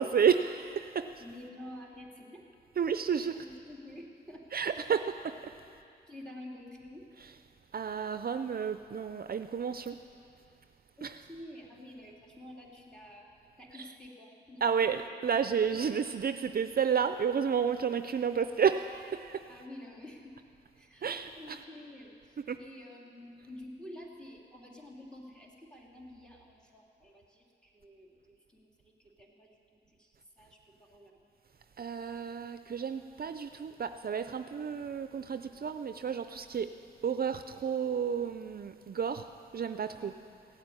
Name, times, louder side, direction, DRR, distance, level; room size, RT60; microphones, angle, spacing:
voice 1, 0.0-1.2 2.7-3.5 4.5-5.5 7.2-7.4 7.7-10.0 11.0-11.3 13.7-14.0 14.6-19.4 21.0-21.6 22.4-22.6 31.8-36.7 37.0-40.2, right 7 dB, 55° right, 9 dB, 0.5 m, -31 dB
voice 2, 1.2-2.4 3.3-4.5 6.1-7.0 11.0-13.3 13.6-15.1 15.7-15.8 19.5-20.3 20.7-30.6 30.9-31.2 40.0-40.2, left 1 dB, 5° left, -2 dB, 3.1 m, -49 dB
16.0 x 8.8 x 9.6 m, 2.5 s
cardioid pair, 65°, 18 cm